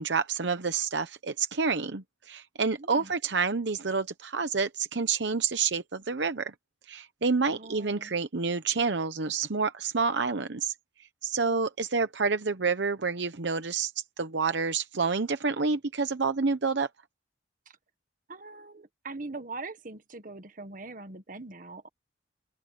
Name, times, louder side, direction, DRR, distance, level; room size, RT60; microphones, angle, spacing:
voice 1, 0.0-6.5 6.9-10.7 11.2-13.9 14.2-16.9, right 4 dB, 70° right, 0.9 m, -28 dB
voice 2, 2.8-3.1 7.5-8.2 17.7-17.8 18.3-21.9, right 3 dB, 45° right, 1.5 m, -42 dB
open air
head